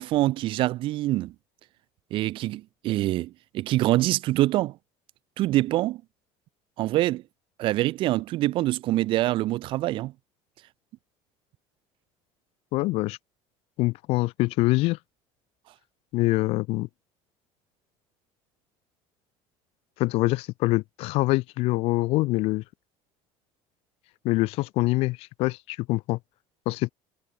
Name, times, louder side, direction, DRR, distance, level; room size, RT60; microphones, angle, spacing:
voice 1, 0.0-1.3 2.1-4.7 5.4-6.0 6.8-7.2 7.6-10.1, right 16 dB, 50° right, 8.0 m, -25 dB
voice 2, 12.7-13.2 13.8-15.0 16.1-16.9 20.0-22.6 24.2-26.2 26.6-26.9, left 21 dB, 60° left, 4.8 m, -25 dB
cardioid pair, 175°, 11 cm